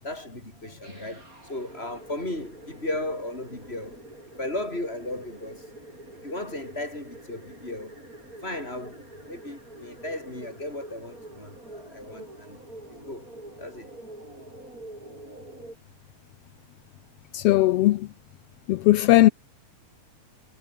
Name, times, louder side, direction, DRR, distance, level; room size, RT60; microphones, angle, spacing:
voice 1, 0.0-4.0 4.4-5.7 6.2-8.0 8.4-12.6 12.9-13.3 13.6-13.9, left 1 dB, 20° left, 7.4 m, -35 dB
sound 1, 0.8-15.8, right 2 dB, 25° right, 7.5 m, -46 dB
voice 2, 17.3-18.1 18.7-19.3, left 16 dB, 75° left, 1.5 m, -18 dB
omnidirectional pair, 3.3 m